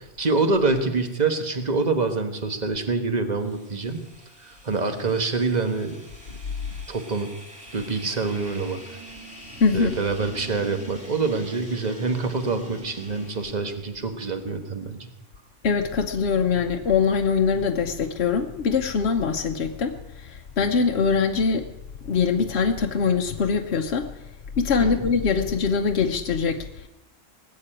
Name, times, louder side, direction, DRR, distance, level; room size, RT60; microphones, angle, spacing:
voice 1, 0.2-4.0 4.4-6.0 6.9-7.3 7.7-8.8 9.7-15.1 24.8-25.1, right 3 dB, 35° right, 7 dB, 1.5 m, -26 dB
sound 1, 3.4-13.5, right 1 dB, 5° right, 3.8 m, -44 dB
voice 2, 9.6-10.0 15.6-21.7 22.1-24.1 24.6-26.9, left 5 dB, 60° left, 3 dB, 1.1 m, -23 dB
19.5 x 7.6 x 8.9 m, 0.97 s
omnidirectional pair, 1.3 m